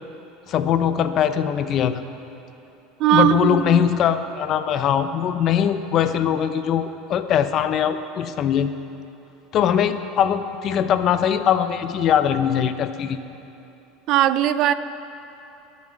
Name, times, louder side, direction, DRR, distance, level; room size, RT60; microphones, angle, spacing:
voice 1, 0.5-2.0 3.1-8.7 9.5-13.2, left 9 dB, 40° left, 10 dB, 0.7 m, -21 dB
voice 2, 3.0-3.8 14.1-14.7, right 12 dB, 50° right, 13 dB, 0.5 m, -19 dB
18.0 x 7.3 x 6.4 m, 2.9 s
supercardioid pair, 130°, 0 cm